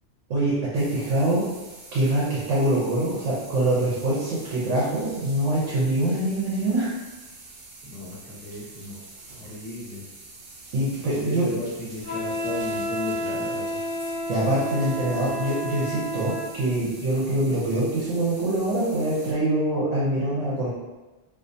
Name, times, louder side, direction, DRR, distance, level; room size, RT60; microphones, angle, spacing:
voice 1, 0.3-1.4 1.9-6.9 10.7-11.5 14.3-20.7, right 1 dB, 85° right, -7 dB, 1.1 m, -24 dB
sound 1, 0.7-19.3, right 2 dB, 60° right, 0.5 m, -45 dB
voice 2, 7.8-9.0 9.3-10.1 11.1-13.8, left 2 dB, 10° left, -16 dB, 1.2 m, -35 dB
Wind instrument woodwind instrument, 12.0-16.5, equal, 30° right, 1.1 m, -30 dB
2.4 x 2.3 x 2.6 m, 1.1 s
omnidirectional pair, 1.3 m